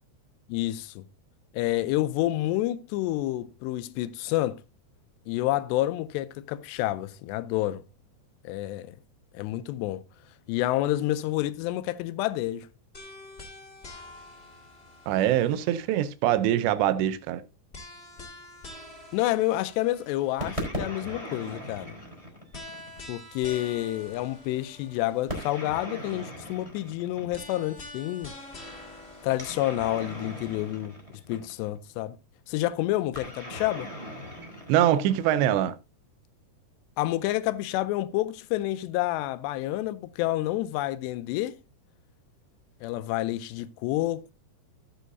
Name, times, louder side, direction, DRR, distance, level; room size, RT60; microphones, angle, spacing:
voice 1, 0.5-1.0 1.5-4.6 5.3-7.8 8.4-9.0 9.3-10.0 10.5-12.7 19.1-22.0 23.1-28.3 29.2-31.0 31.3-32.2 32.5-33.9 37.0-41.6 42.8-44.3, left 15 dB, 80° left, 2.7 m, -29 dB
sound 1, 12.9-16.1 17.7-20.7 22.5-25.7 27.3-30.8, left 2 dB, 40° left, 0.9 m, -46 dB
voice 2, 15.1-17.4 34.7-35.7, right 11 dB, 80° right, 3.0 m, -23 dB
sound 2, 20.4-23.1 25.3-27.7 29.3-31.8 33.1-35.6, equal, 10° right, 3.3 m, -38 dB
15.5 x 8.0 x 2.7 m
omnidirectional pair, 5.1 m